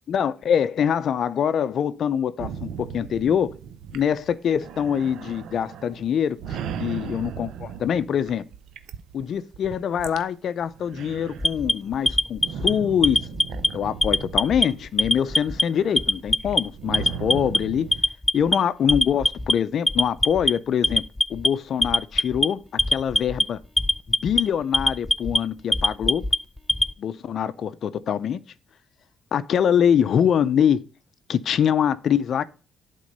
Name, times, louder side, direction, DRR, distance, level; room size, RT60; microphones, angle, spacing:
voice 1, 0.1-3.5 3.9-6.4 6.8-8.5 9.1-13.3 13.7-17.9 18.3-21.0 21.3-22.6 22.9-23.6 24.1-26.3 27.0-28.4 29.3-30.8 31.3-32.5, left 8 dB, 60° left, 0.5 m, -24 dB
sound 1, 2.4-10.2 10.6-18.0, right 8 dB, 80° right, 0.6 m, -37 dB
Alarm, 11.4-12.7 13.0-13.7 14.0-14.7 15.0-15.6 16.0-16.6 16.9-17.6 17.9-18.6 18.9-19.5 19.9-20.5 20.8-21.5 21.8-22.5 22.8-23.4 23.8-24.4 24.7-25.4 25.7-26.9, left 1 dB, 10° left, 0.4 m, -21 dB
8.4 x 3.7 x 5.3 m
cardioid pair, 90°, 0 cm